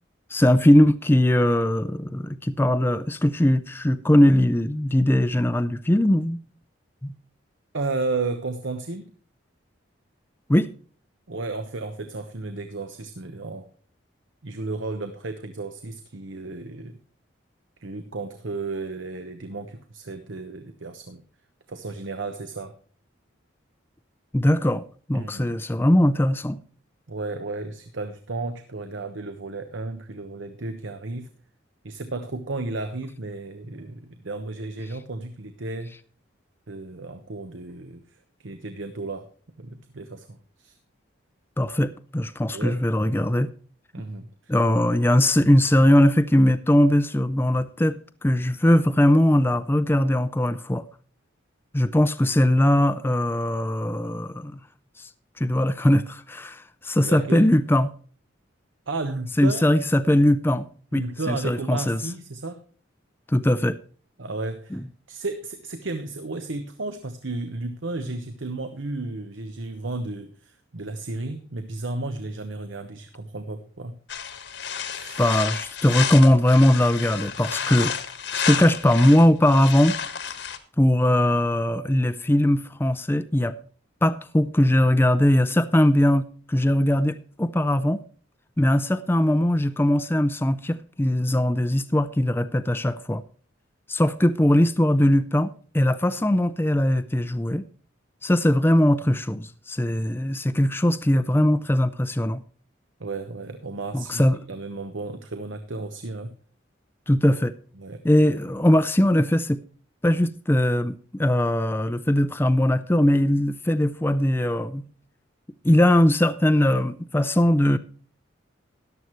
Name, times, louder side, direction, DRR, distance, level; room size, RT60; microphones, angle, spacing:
voice 1, 0.3-6.4 7.0-7.1 10.5-10.7 24.3-26.6 41.6-43.5 44.5-50.8 51.7-54.6 55.0-55.1 55.4-57.9 59.4-60.7 60.9-62.0 63.3-63.8 64.7-64.8 75.2-77.9 78.3-80.0 80.2-80.3 80.8-83.6 84.0-88.0 88.6-93.2 93.9-97.7 98.2-102.4 103.9-104.4 107.1-107.5 108.0-109.6 110.0-114.9 115.6-117.8, left 1 dB, 10° left, 0.4 m, -20 dB
voice 2, 7.7-9.1 11.3-13.7 14.4-17.0 17.8-21.2 21.7-22.7 25.1-25.6 27.1-31.3 31.8-36.0 36.7-39.3 39.6-40.8 42.5-42.8 43.9-44.5 57.1-57.5 58.9-59.7 60.9-62.6 64.2-74.0 74.9-75.3 103.0-106.4 107.8-108.0, right 3 dB, 75° right, 1.0 m, -33 dB
sound 1, 74.1-80.6, left 7 dB, 65° left, 1.3 m, -31 dB
14.0 x 11.0 x 3.1 m
head